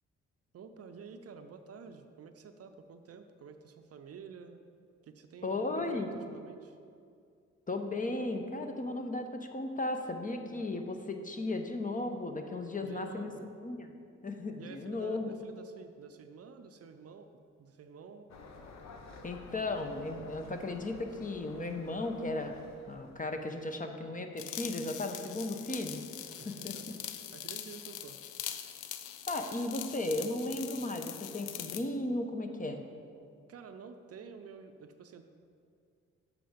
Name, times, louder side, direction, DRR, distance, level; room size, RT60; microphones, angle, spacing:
voice 1, 0.5-4.6 5.0-6.8 12.8-13.5 14.5-17.3 17.6-18.3 26.4-26.9 27.3-28.6 33.5-35.2, right 5 dB, 50° right, 8 dB, 0.6 m, -50 dB
voice 2, 5.4-6.1 7.7-13.9 14.2-15.4 19.2-26.0 26.4-26.8 29.3-32.8, left 2 dB, 25° left, 5 dB, 0.8 m, -35 dB
sound 1, 18.3-23.5, left 3 dB, 60° left, 0.9 m, -51 dB
sound 2, 24.4-31.9, left 11 dB, 80° left, 0.5 m, -43 dB
7.8 x 4.8 x 5.0 m, 2.3 s
supercardioid pair, 50°, 31 cm